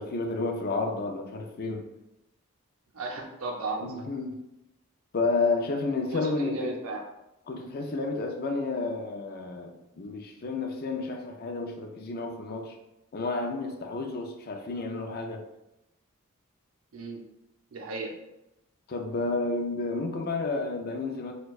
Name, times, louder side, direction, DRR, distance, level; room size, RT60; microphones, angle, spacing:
voice 1, 0.0-1.8 3.8-4.4 5.1-6.7 7.5-12.8 13.1-15.4 18.9-21.3, left 3 dB, 45° left, 4 dB, 0.4 m, -31 dB
voice 2, 2.9-3.9 6.1-7.0 16.9-17.2 17.7-18.1, right 3 dB, 70° right, 1 dB, 0.6 m, -35 dB
4.3 x 2.3 x 2.3 m, 0.90 s
head